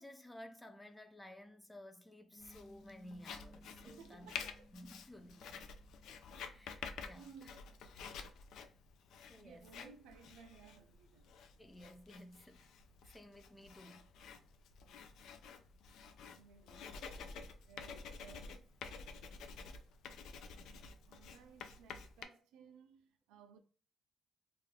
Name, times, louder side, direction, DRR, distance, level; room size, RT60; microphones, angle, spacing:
voice 1, 0.0-4.3 4.7-5.6 6.4-7.3 9.3-9.9 11.6-12.7 13.1-14.1 21.0-21.2, left 1 dB, 15° left, 0.5 m, -55 dB
Piano, 2.3-8.0, left 1 dB, 50° left, 1.1 m, -63 dB
Writing, 2.4-22.2, left 5 dB, 80° left, 0.3 m, -51 dB
voice 2, 3.9-4.7 5.4-5.5 6.8-7.6 9.1-11.4 16.3-18.7 21.1-23.6, right 6 dB, 85° right, 0.3 m, -60 dB
2.4 x 2.1 x 3.2 m
supercardioid pair, 60°, 0 cm